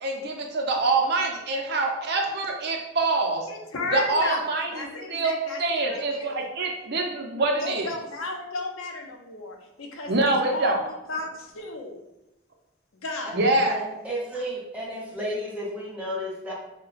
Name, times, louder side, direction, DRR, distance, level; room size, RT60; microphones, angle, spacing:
voice 1, 0.0-3.5 3.9-7.9 10.1-10.8 13.3-13.8, right 2 dB, 55° right, 1 dB, 0.5 m, -25 dB
voice 2, 3.5-5.6 5.9-6.3 7.6-10.8 11.1-12.0 12.9-13.3, left 2 dB, 90° left, 1 dB, 0.6 m, -34 dB
voice 3, 13.7-16.5, equal, 5° right, -5 dB, 0.7 m, -33 dB
2.8 x 2.1 x 4.0 m, 0.96 s
head